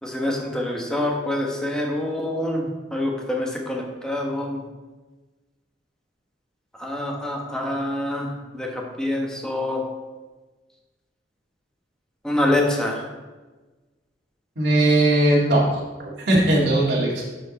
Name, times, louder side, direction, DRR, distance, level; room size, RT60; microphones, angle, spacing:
voice 1, 0.0-2.7 2.9-4.6 6.7-9.8 12.2-13.1, left 1 dB, 5° left, -1 dB, 1.3 m, -26 dB
voice 2, 14.6-15.8 16.3-17.2, right 1 dB, 80° right, -4 dB, 2.1 m, -18 dB
11.5 x 4.6 x 4.2 m, 1.3 s
head